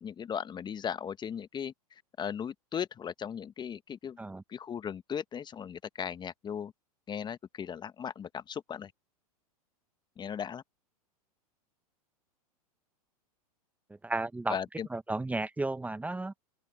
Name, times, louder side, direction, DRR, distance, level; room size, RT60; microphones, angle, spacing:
voice 1, 0.0-4.2 4.5-6.7 7.1-8.9 10.2-10.6 14.5-14.9, left 8 dB, 25° left, 1.2 m, -37 dB
voice 2, 13.9-14.6 14.9-16.4, right 2 dB, 10° right, 1.3 m, -33 dB
open air
hypercardioid pair, 95°, 19 cm